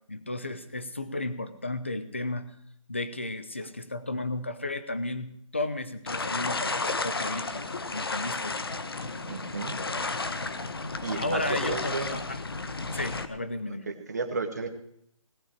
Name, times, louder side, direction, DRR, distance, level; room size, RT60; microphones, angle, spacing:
voice 1, 0.1-2.5 2.9-8.6 11.2-12.4 12.9-13.9, left 2 dB, 20° left, 12 dB, 0.6 m, -33 dB
sound 1, 6.1-13.3, left 3 dB, 45° left, 1.0 m, -33 dB
voice 2, 9.3-9.8 11.0-12.1 13.7-13.8 14.1-14.7, right 4 dB, 30° right, 6 dB, 1.4 m, -33 dB
18.0 x 6.2 x 9.9 m, 0.72 s
hypercardioid pair, 180°, 18 cm